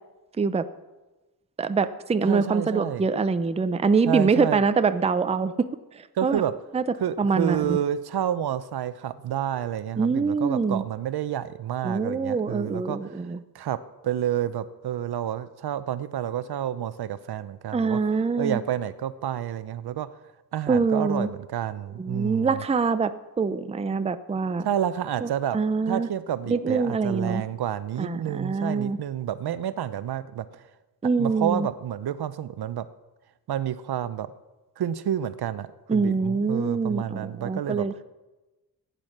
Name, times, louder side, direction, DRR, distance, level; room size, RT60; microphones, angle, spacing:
voice 1, 1.6-5.7 5.9-6.4 6.7-6.8 7.2-7.8 10.0-10.8 11.8-13.4 17.7-18.6 20.7-21.3 22.0-23.1 23.4-24.7 25.2-26.1 26.5-27.4 28.0-29.0 31.0-31.7 35.9-38.0, right 4 dB, 15° right, 12 dB, 0.5 m, -24 dB
voice 2, 2.2-3.0 4.1-4.6 6.2-6.5 7.0-13.2 13.5-13.8 14.0-18.0 18.4-20.1 20.5-22.6 24.6-25.6 25.9-30.6 31.2-32.9 33.5-34.3 34.8-37.9, right 10 dB, 75° right, 14 dB, 0.7 m, -29 dB
15.0 x 9.1 x 6.5 m, 1.1 s
wide cardioid pair, 140°, 39 cm